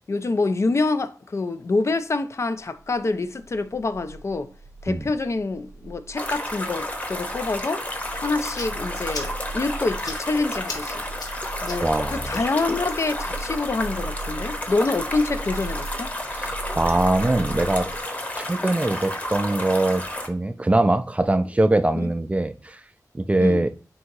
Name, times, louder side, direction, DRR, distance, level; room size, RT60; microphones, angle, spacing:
voice 1, 0.1-4.5 4.8-7.8 8.1-11.0 11.6-11.9 12.1-16.1 21.9-22.1 23.4-23.6, left 3 dB, 50° left, 0.4 m, -26 dB
sound 1, 2.6-18.0, right 2 dB, 90° right, 0.4 m, -38 dB
sound 2, 6.2-20.3, left 1 dB, 25° left, 0.8 m, -31 dB
sound 3, 8.2-15.6, left 3 dB, 90° left, 0.9 m, -43 dB
voice 2, 11.8-12.3 16.3-17.9 18.4-22.8 23.1-23.7, right 2 dB, 20° right, 0.3 m, -22 dB
3.7 x 2.7 x 4.5 m
wide cardioid pair, 80°, 6 cm